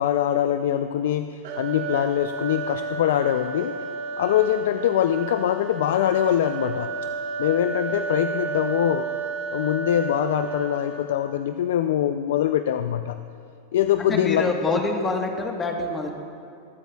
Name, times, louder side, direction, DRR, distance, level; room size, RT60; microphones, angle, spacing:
voice 1, 0.0-3.8 4.2-6.9 7.4-9.1 9.5-13.2 13.7-14.8, left 10 dB, 75° left, 9 dB, 0.3 m, -23 dB
sound 1, 1.4-11.4, right 4 dB, 65° right, 1.3 m, -32 dB
voice 2, 14.0-16.1, left 3 dB, 20° left, 3 dB, 1.3 m, -26 dB
21.5 x 8.1 x 2.3 m, 2.5 s
hypercardioid pair, 110°, 0 cm